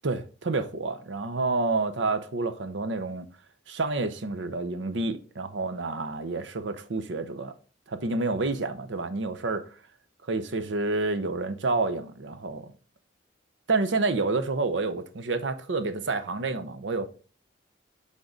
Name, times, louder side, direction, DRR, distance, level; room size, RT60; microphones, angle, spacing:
voice 1, 0.0-3.3 3.7-7.5 7.9-9.6 10.3-12.7 13.7-17.1, right 3 dB, 75° right, 0.7 m, -29 dB
6.2 x 3.7 x 5.2 m
head